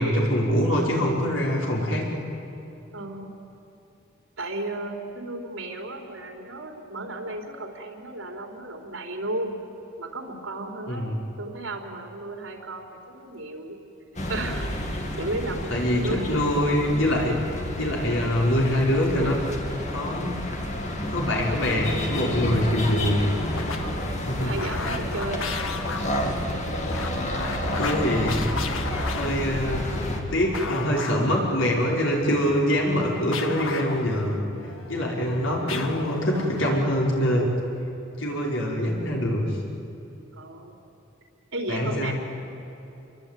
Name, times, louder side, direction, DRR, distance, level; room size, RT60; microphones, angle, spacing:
voice 1, 0.0-2.0 10.9-11.2 15.7-17.4 17.8-19.4 19.9-20.4 21.1-23.2 24.3-24.5 27.8-28.5 29.1-29.9 30.3-34.3 34.9-37.5 38.2-39.4 41.7-42.1, equal, 75° left, -2 dB, 5.6 m, -24 dB
voice 2, 2.9-3.4 4.4-9.6 10.0-11.1 11.4-13.8 14.3-16.5 23.8-25.6 40.3-40.8 41.5-42.1, right 2 dB, 80° right, 2 dB, 4.1 m, -34 dB
sound 1, 14.2-30.2, left 1 dB, 35° left, 2.9 m, -30 dB
sound 2, 21.2-36.9, left 4 dB, 90° left, 1.8 m, -36 dB
28.0 x 22.5 x 9.4 m, 2.9 s
head